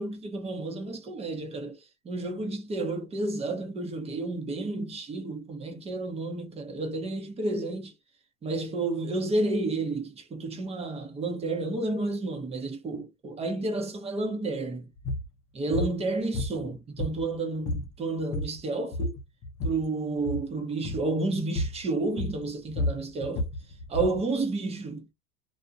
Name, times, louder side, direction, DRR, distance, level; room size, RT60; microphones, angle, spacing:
voice 1, 0.0-1.8 2.0-7.9 8.4-14.9 15.5-19.1 19.6-23.5 23.9-25.1, right 2 dB, 15° right, 0.7 m, -31 dB
sound 1, 15.0-15.3 15.7-15.9 16.3-17.3 17.6-17.9 18.2-18.6 18.9-19.8 20.2-20.5 20.8-21.1 21.5-21.8 22.2-24.2, left 1 dB, 35° left, 0.7 m, -31 dB
2.5 x 2.1 x 2.6 m
supercardioid pair, 125°, 39 cm